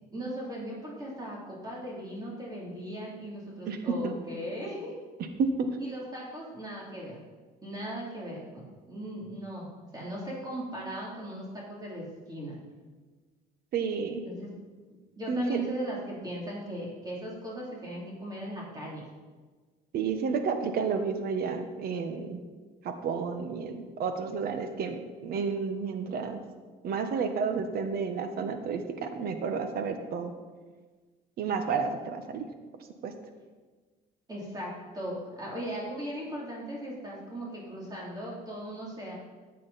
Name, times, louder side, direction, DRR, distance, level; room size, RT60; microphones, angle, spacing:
voice 1, 0.1-4.9 5.8-7.2 7.6-8.6 8.9-12.6 14.3-14.5 15.1-19.1 34.3-39.2, right 1 dB, 25° right, -4 dB, 3.3 m, -38 dB
voice 2, 3.7-4.1 5.4-5.7 13.7-14.2 15.3-15.6 19.9-22.4 22.8-26.4 26.8-30.3 31.4-32.5 33.0-33.1, right 5 dB, 65° right, 7 dB, 1.3 m, -31 dB
13.5 x 8.3 x 4.2 m, 1.4 s
cardioid pair, 110°, 17 cm